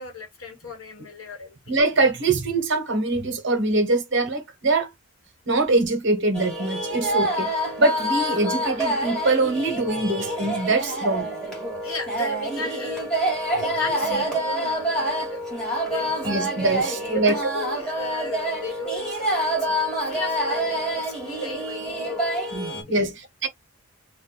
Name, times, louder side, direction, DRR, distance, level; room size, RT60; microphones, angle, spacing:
voice 1, 0.0-1.8 11.8-13.1 13.5-15.4 15.8-16.2 17.1-22.4 22.9-23.1, left 1 dB, 70° left, 1.2 m, -35 dB
voice 2, 1.7-4.9 5.5-7.5 7.8-11.3 14.1-14.2 16.2-17.4 22.5-23.5, right 2 dB, 55° right, 0.9 m, -23 dB
sound 1, 6.3-22.8, right 1 dB, 5° left, 1.2 m, -27 dB
2.6 x 2.2 x 3.7 m
head